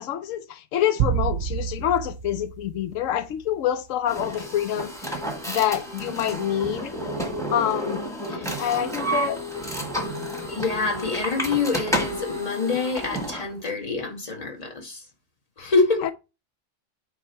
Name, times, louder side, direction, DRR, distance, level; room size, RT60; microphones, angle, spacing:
voice 1, 0.0-5.1 5.5-6.9 7.5-9.4 15.6-15.7 16.0-16.1, left 10 dB, 90° left, 1.0 m, -27 dB
sound 1, 1.0-3.5, right 9 dB, 55° right, 0.7 m, -28 dB
sound 2, 4.1-13.5, equal, ahead, 1.5 m, -30 dB
voice 2, 10.5-15.0 15.6-16.1, left 4 dB, 30° left, 1.7 m, -26 dB
9.0 x 3.3 x 4.4 m
omnidirectional pair, 1.3 m